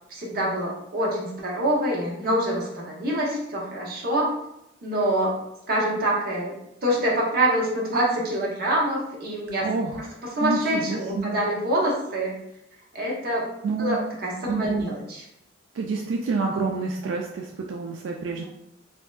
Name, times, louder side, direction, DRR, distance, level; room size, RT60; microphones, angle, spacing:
voice 1, 0.1-4.4 4.8-5.4 5.7-6.5 6.8-9.7 10.0-12.4 12.9-13.5 13.8-15.2, right 1 dB, 50° right, -3 dB, 0.8 m, -25 dB
voice 2, 9.6-10.0 10.4-11.4 13.6-14.0 14.5-14.8 15.7-18.4, right 4 dB, 85° right, 0 dB, 0.3 m, -28 dB
3.3 x 2.6 x 2.2 m, 0.82 s
head